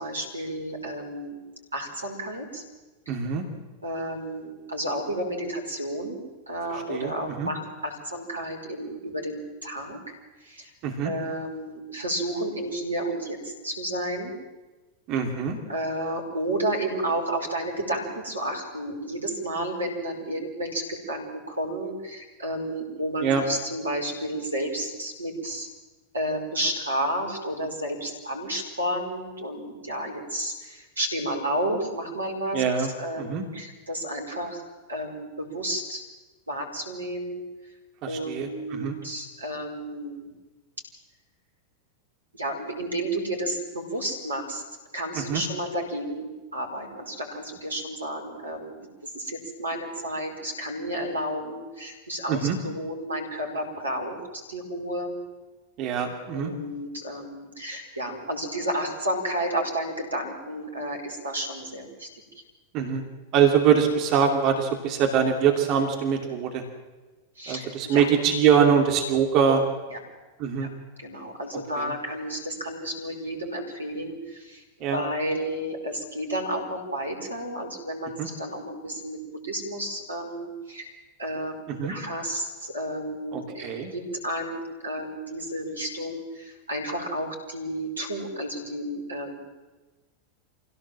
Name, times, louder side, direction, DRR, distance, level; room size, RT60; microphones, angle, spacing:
voice 1, 0.0-1.4 1.7-2.6 3.0-3.1 3.8-6.2 6.5-10.0 10.4-10.7 11.0-14.3 15.7-25.7 26.1-34.6 34.9-36.0 36.5-37.4 38.0-40.3 42.3-44.6 44.9-48.7 49.0-55.2 56.3-62.1 67.3-68.1 69.9-70.0 70.6-70.7 71.0-80.9 81.2-89.3, right 1 dB, 80° right, 1 dB, 5.0 m, -31 dB
voice 2, 3.1-3.4 6.7-7.1 7.4-7.5 10.8-11.1 15.1-15.6 23.2-23.4 32.5-32.9 33.2-33.4 38.0-38.9 45.1-45.4 52.3-52.6 55.8-56.5 62.7-63.0 63.3-66.6 67.5-69.6 70.4-70.7 71.8-71.9 74.8-75.0 78.2-78.3 81.8-81.9 83.3-83.9, right 7 dB, 40° right, 3 dB, 2.7 m, -23 dB
25.5 x 17.0 x 7.5 m, 1.2 s
figure-of-eight pair, 90°, 0 cm